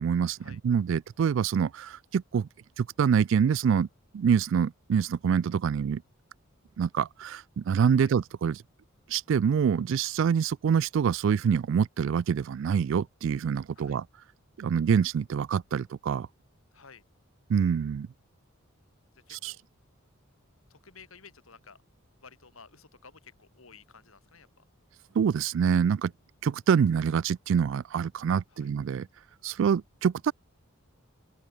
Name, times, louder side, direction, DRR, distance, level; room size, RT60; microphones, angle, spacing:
voice 1, 0.0-2.5 2.8-3.9 4.1-6.0 6.8-8.6 9.1-14.0 14.6-16.3 17.5-18.1 19.3-19.5 25.2-26.1 26.4-29.1 29.4-30.3, right 7 dB, 65° right, 0.3 m, -26 dB
voice 2, 16.7-17.0 19.1-19.6 20.7-21.8 22.2-24.6 28.5-28.7, left 5 dB, 80° left, 3.4 m, -53 dB
open air
head